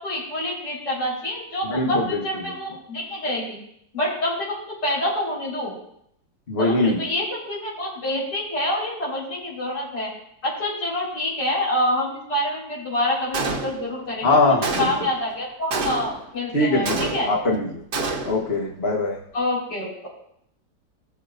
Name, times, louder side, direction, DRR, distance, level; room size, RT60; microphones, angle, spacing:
voice 1, 0.0-3.6 3.9-5.8 6.6-10.1 10.4-14.4 14.8-17.3 19.3-20.1, left 1 dB, 75° left, -7 dB, 5.0 m, -27 dB
voice 2, 1.6-2.5 6.5-7.0 14.2-14.9 16.5-17.8 18.2-19.2, left 2 dB, 40° left, -1 dB, 1.4 m, -22 dB
Gunshot gunfire, 13.3-14.1 14.6-15.2 15.7-16.3 16.9-17.5 17.9-18.5, right 3 dB, 70° right, 1.7 m, -28 dB
19.5 x 6.9 x 2.5 m, 0.74 s
omnidirectional pair, 1.8 m